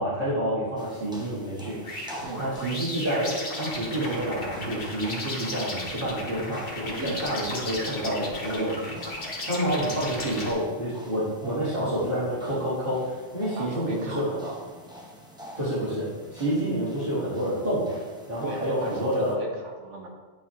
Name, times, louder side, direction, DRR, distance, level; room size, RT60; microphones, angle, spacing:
voice 1, 0.0-2.1 2.4-14.2 15.6-18.0 18.3-19.4, right 1 dB, 45° right, -13 dB, 2.2 m, -28 dB
sound 1, 0.8-19.4, equal, 5° right, 0.6 m, -46 dB
sound 2, 1.8-10.5, left 1 dB, 50° left, 1.4 m, -35 dB
voice 2, 13.5-14.6 18.4-20.1, right 1 dB, 75° right, 1 dB, 1.3 m, -36 dB
10.5 x 3.5 x 3.1 m, 1.3 s
omnidirectional pair, 1.2 m